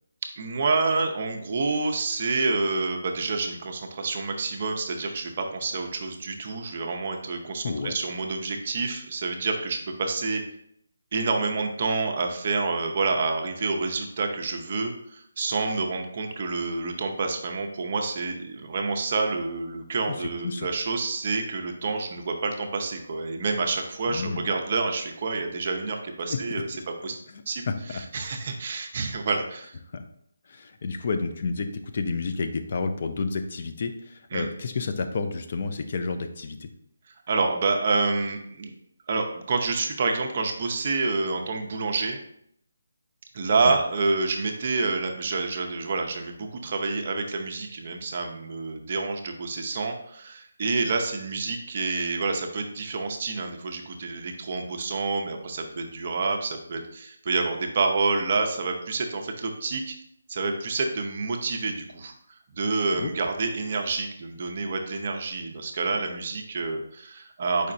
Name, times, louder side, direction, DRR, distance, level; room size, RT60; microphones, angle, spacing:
voice 1, 0.4-10.4 11.1-26.7 27.0-27.2 27.5-27.6 27.9-29.8 34.3-34.5 37.3-38.7 39.1-42.2 43.3-59.9 60.3-62.1 62.5-67.7, right 3 dB, 40° right, 3 dB, 0.6 m, -28 dB
voice 2, 7.6-8.0 20.1-20.7 24.1-24.5 26.3-26.4 27.3-28.0 29.9-30.0 30.5-31.7 31.9-36.7 43.6-43.8 63.0-63.1, left 4 dB, 40° left, 7 dB, 0.4 m, -30 dB
4.8 x 4.2 x 2.6 m, 0.71 s
hypercardioid pair, 170°, 0 cm